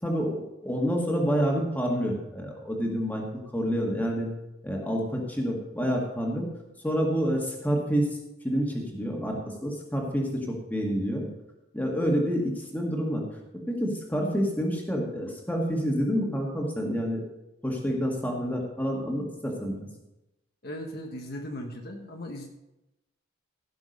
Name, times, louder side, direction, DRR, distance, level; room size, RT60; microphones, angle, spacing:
voice 1, 0.0-3.2 3.5-4.3 4.6-6.5 6.8-8.2 8.4-11.3 11.7-13.2 13.7-17.2 17.6-19.8, equal, 10° left, -1 dB, 1.9 m, -28 dB
voice 2, 20.6-22.5, equal, 50° left, 2 dB, 1.2 m, -37 dB
16.0 x 6.2 x 5.3 m, 0.94 s
head